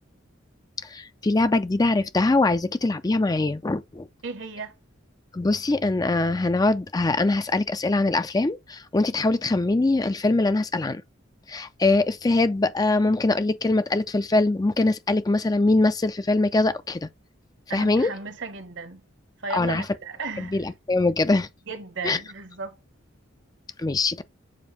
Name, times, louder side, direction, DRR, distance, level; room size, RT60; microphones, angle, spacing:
voice 1, 0.8-4.1 5.3-11.0 11.5-17.1 17.7-18.1 19.5-19.9 20.4-21.5 22.0-22.2 23.8-24.2, left 2 dB, 20° left, 0.4 m, -23 dB
voice 2, 4.2-4.7 17.7-19.0 19.4-20.6 21.7-22.8, right 4 dB, 65° right, 1.2 m, -35 dB
7.3 x 2.6 x 5.5 m
head